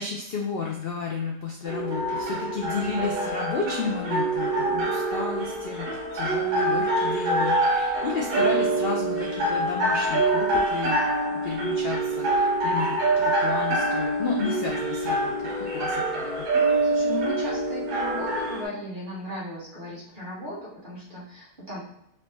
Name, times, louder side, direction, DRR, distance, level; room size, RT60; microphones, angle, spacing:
voice 1, 0.0-16.5, left 4 dB, 70° left, 0 dB, 0.5 m, -32 dB
sound 1, 1.6-18.6, right 2 dB, 85° right, 1.6 m, -25 dB
voice 2, 16.8-21.8, equal, 30° right, -7 dB, 1.5 m, -36 dB
4.3 x 3.0 x 3.2 m, 0.76 s
omnidirectional pair, 1.7 m